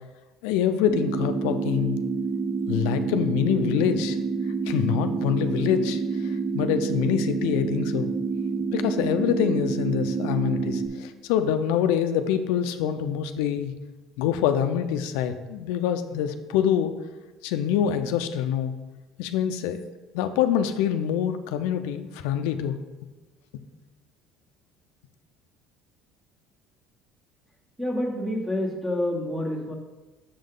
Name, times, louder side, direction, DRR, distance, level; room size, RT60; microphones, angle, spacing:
voice 1, 0.4-2.0 2.7-4.2 4.7-8.1 8.6-13.7 14.2-16.9 17.4-18.7 19.2-19.8 20.1-22.8, left 9 dB, 90° left, 8 dB, 0.4 m, -25 dB
sound 1, 0.9-10.9, right 4 dB, 25° right, 0.6 m, -28 dB
voice 2, 27.8-29.8, left 1 dB, 5° right, -1 dB, 1.3 m, -28 dB
6.7 x 5.4 x 3.8 m, 1.2 s
cardioid pair, 140°, 0 cm